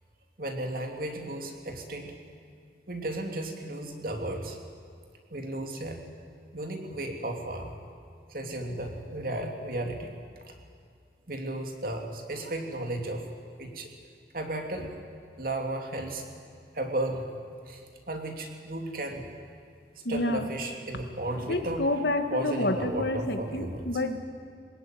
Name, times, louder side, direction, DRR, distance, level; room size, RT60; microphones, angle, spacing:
voice 1, 0.4-2.2 2.9-4.6 5.3-6.0 6.5-7.7 8.3-10.1 10.5-10.6 11.3-13.3 13.6-13.9 14.3-14.9 15.4-16.3 16.7-17.3 17.7-19.3 20.1-21.8 22.3-23.9, right 1 dB, 50° right, 3 dB, 2.9 m, -34 dB
voice 2, 20.1-20.5 21.5-24.2, left 1 dB, 70° left, 7 dB, 1.8 m, -28 dB
23.0 x 20.0 x 9.3 m, 2.3 s
head